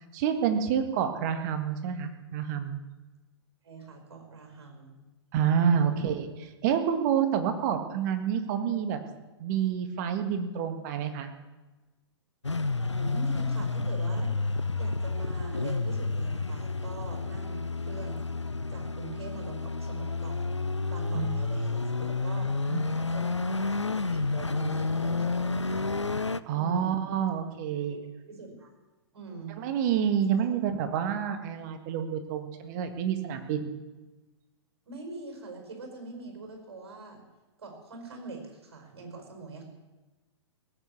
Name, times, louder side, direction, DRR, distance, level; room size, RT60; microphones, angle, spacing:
voice 1, 0.1-2.8 5.3-6.3 6.6-9.0 9.4-11.3 21.1-21.3 22.7-22.8 26.5-28.0 29.6-33.7, right 8 dB, 40° right, 7 dB, 1.7 m, -28 dB
voice 2, 3.6-5.0 5.5-6.1 12.9-14.3 14.8-18.2 18.7-22.5 22.9-26.0 26.5-27.1 27.9-28.0 28.3-28.7 29.1-29.6 30.3-30.4 34.8-37.2 37.6-39.6, right 3 dB, 60° right, 2 dB, 5.1 m, -43 dB
sound 1, 12.4-26.4, left 3 dB, 90° left, 0.6 m, -30 dB
18.0 x 8.0 x 8.5 m, 1.2 s
figure-of-eight pair, 110°, 15 cm